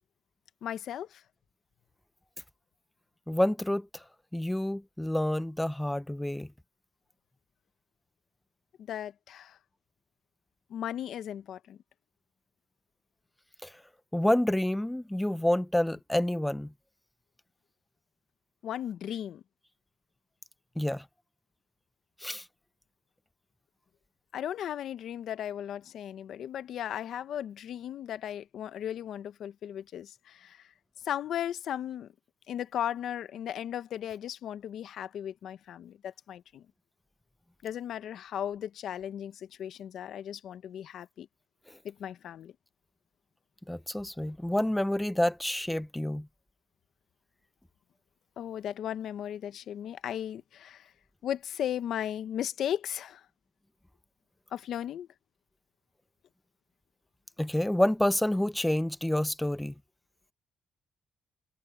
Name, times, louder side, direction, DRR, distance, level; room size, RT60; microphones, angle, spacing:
voice 1, 0.6-1.2 8.8-9.6 10.7-11.8 18.6-19.4 24.3-30.6 31.0-32.1 32.5-36.6 37.6-41.3 41.8-42.5 48.4-50.9 51.2-53.2 54.5-55.1, left 10 dB, 70° left, 1.0 m, -36 dB
voice 2, 3.3-4.0 4.3-6.5 13.6-13.7 14.1-16.7 20.8-21.0 22.2-22.4 43.7-46.3 57.4-59.7, left 1 dB, 5° left, 0.6 m, -28 dB
cardioid pair, 90°, 0 cm